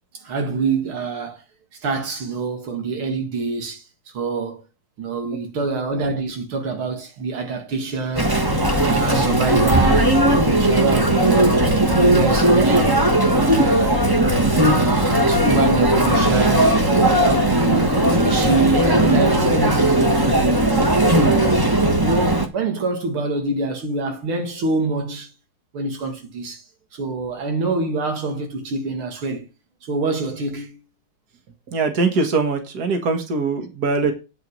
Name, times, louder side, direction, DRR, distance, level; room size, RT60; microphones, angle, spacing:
voice 1, 0.1-1.4 1.8-3.8 4.1-4.6 5.0-8.4 8.8-10.1 10.4-13.0 13.3-14.0 14.5-16.8 17.1-20.7 21.1-25.3 25.7-26.6 26.9-29.5 29.8-30.8, right 4 dB, 90° right, 2.8 m, -25 dB
Chatter, 8.1-22.5, right 1 dB, 15° right, 1.1 m, -17 dB
voice 2, 31.7-34.1, right 3 dB, 50° right, 2.2 m, -22 dB
9.2 x 5.1 x 6.3 m
omnidirectional pair, 2.3 m